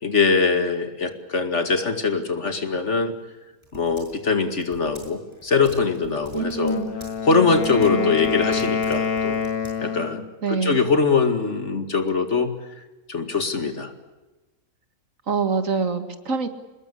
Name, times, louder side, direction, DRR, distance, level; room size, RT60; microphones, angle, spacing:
voice 1, 0.0-3.1 3.7-6.8 7.2-9.4 9.8-12.5 13.1-13.9, left 4 dB, 50° left, 8 dB, 2.5 m, -22 dB
Typing, 2.7-10.2, equal, 20° right, 7.2 m, -47 dB
voice 2, 6.3-6.9 7.7-8.1 10.4-10.8 15.3-16.5, right 5 dB, 65° right, 8 dB, 2.4 m, -25 dB
Wind instrument woodwind instrument, 6.5-10.3, left 6 dB, 85° left, 2.2 m, -27 dB
25.0 x 21.0 x 8.4 m, 1.1 s
omnidirectional pair, 1.5 m